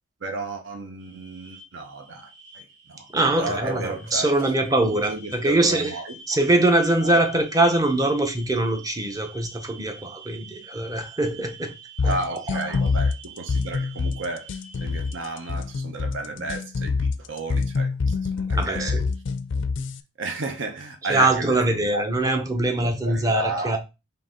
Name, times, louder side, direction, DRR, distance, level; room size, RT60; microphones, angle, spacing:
voice 1, 0.2-2.3 2.5-3.1 3.4-4.3 4.9-6.2 7.0-7.2 12.0-14.5 14.8-19.0 20.2-22.0 23.0-23.8, right 3 dB, 75° right, 0.7 m, -33 dB
sound 1, 1.0-15.5, right 3 dB, 60° right, 2.4 m, -47 dB
voice 2, 3.1-6.0 6.3-11.7 12.0-12.1 12.5-12.6 16.4-16.5 18.5-19.1 21.1-23.8, right 2 dB, 20° right, 0.7 m, -23 dB
sound 2, 12.0-20.0, left 4 dB, 70° left, 0.4 m, -25 dB
3.9 x 3.0 x 3.8 m
head